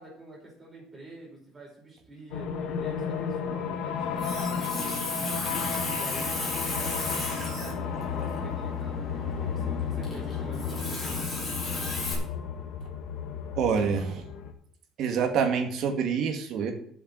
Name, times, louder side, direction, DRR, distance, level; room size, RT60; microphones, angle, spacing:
voice 1, 0.0-4.7 5.4-9.1 9.4-11.7, right 1 dB, 15° right, -2 dB, 4.8 m, -46 dB
sound 1, 2.3-14.5, left 7 dB, 65° left, 1.6 m, -33 dB
Water tap faucet, 4.0-12.1, left 2 dB, 20° left, 3.8 m, -34 dB
voice 2, 13.5-14.2 15.0-16.7, right 6 dB, 50° right, 5 dB, 2.1 m, -26 dB
7.9 x 7.1 x 8.3 m, 0.65 s
cardioid pair, 175°, 0 cm